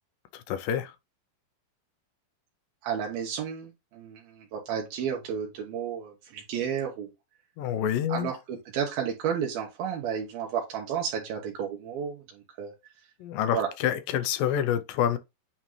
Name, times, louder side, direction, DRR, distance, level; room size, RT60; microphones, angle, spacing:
voice 1, 0.3-0.9 7.6-8.3 13.2-15.2, left 10 dB, 80° left, 2.2 m, -27 dB
voice 2, 2.8-7.1 8.1-12.7 13.5-13.7, right 8 dB, 80° right, 3.1 m, -32 dB
8.9 x 3.9 x 3.1 m
omnidirectional pair, 4.2 m